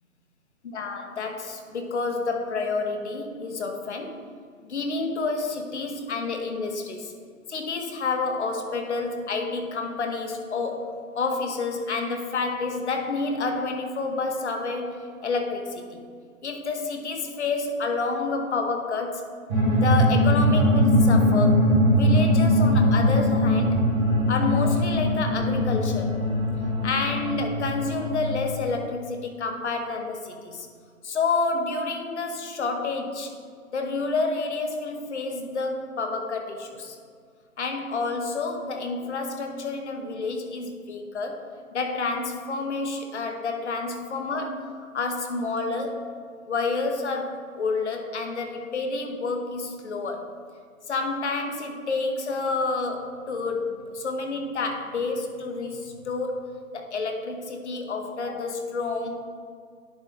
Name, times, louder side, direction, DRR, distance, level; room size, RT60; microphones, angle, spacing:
voice 1, 0.7-4.2 4.6-7.1 7.5-15.0 15.2-16.1 16.4-19.2 19.7-23.8 24.3-26.2 26.8-30.7 31.0-33.3 33.7-37.0 37.6-41.5 41.7-46.0 46.5-50.2 50.9-56.5 56.7-59.2, left 3 dB, 50° left, 4 dB, 0.9 m, -29 dB
sound 1, 19.5-28.7, left 1 dB, 5° right, 0.7 m, -21 dB
10.5 x 3.6 x 3.5 m, 2.1 s
hypercardioid pair, 155°, 42 cm